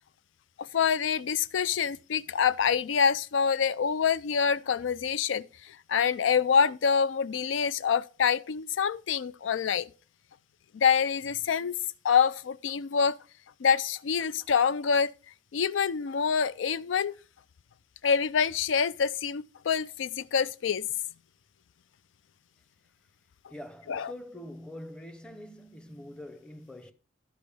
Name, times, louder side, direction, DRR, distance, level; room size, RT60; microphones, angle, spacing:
voice 1, 0.7-5.5 5.9-9.9 10.7-11.8 12.0-13.2 13.6-15.1 15.5-17.1 18.0-20.9 23.9-24.1, left 6 dB, 85° left, 0.4 m, -26 dB
voice 2, 23.5-26.9, left 1 dB, 5° left, 0.6 m, -44 dB
13.5 x 5.1 x 3.4 m
head